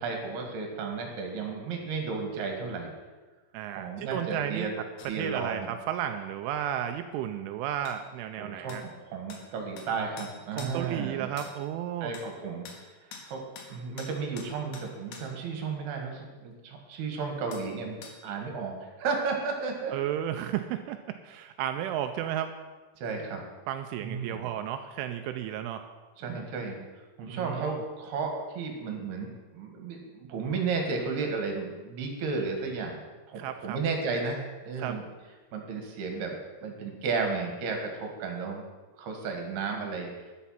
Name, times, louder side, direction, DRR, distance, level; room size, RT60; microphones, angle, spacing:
voice 1, 0.0-2.9 3.8-4.7 5.0-5.7 8.4-11.3 12.0-12.7 13.0-13.4 13.7-19.9 23.0-23.4 24.0-24.5 26.2-26.8 27.2-33.0 33.3-35.0 35.5-36.4 36.6-38.7 39.0-40.3, right 4 dB, 60° right, 3 dB, 3.6 m, -33 dB
voice 2, 3.5-4.7 5.2-8.8 10.5-12.1 19.9-22.5 23.7-25.8 27.3-27.8 33.4-33.8 34.8-35.0, right 11 dB, 85° right, 7 dB, 3.1 m, -33 dB
sound 1, 5.0-5.1 7.8-8.0 8.7-8.8 9.3-9.4 9.8-9.9 10.2-10.8 11.4-11.5 12.1-12.3 12.6-12.8 13.1-13.3 13.6-13.7 14.0-15.3 17.5-17.7 18.0-18.2, left 5 dB, 65° left, 3.5 m, -45 dB
12.5 x 11.5 x 5.8 m, 1.3 s
omnidirectional pair, 5.6 m